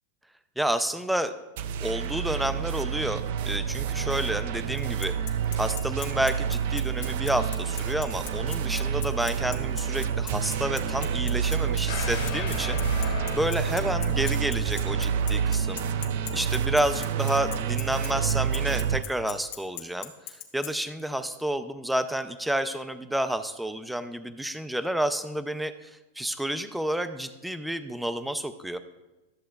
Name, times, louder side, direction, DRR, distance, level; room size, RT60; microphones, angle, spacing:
voice 1, 0.6-1.3 1.8-5.1 5.6-15.8 16.3-28.8, right 1 dB, ahead, 10 dB, 0.4 m, -30 dB
sound 1, 1.6-19.0, right 7 dB, 65° right, 0.4 m, -28 dB
Bicycle, 4.8-20.7, left 12 dB, 60° left, 1.3 m, -38 dB
sound 2, 11.9-15.9 16.2-16.3, left 4 dB, 80° left, 1.6 m, -36 dB
12.5 x 7.4 x 2.3 m, 1.1 s
supercardioid pair, 150°, 0 cm